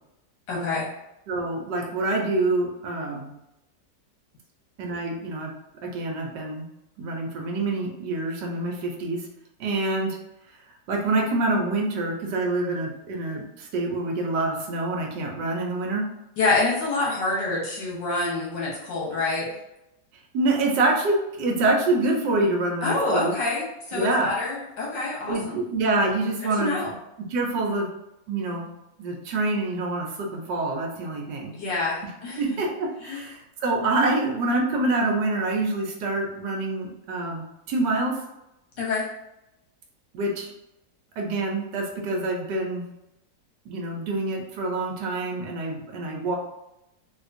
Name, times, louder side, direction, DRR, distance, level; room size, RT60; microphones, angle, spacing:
voice 1, 0.5-0.9 16.4-19.5 22.8-25.5 26.6-26.9 31.5-32.4 33.0-33.2 38.8-39.1, left 3 dB, 85° left, -4 dB, 1.8 m, -26 dB
voice 2, 1.3-3.3 4.8-5.5 5.8-6.7 7.0-9.3 9.6-10.2 10.9-16.0 20.3-23.3 23.9-24.3 25.3-27.9 28.3-28.7 29.0-31.5 32.4-38.2 40.1-40.5 41.2-42.8 43.7-46.4, right 2 dB, 75° right, 0 dB, 1.3 m, -26 dB
3.6 x 2.8 x 2.6 m, 0.87 s
omnidirectional pair, 1.9 m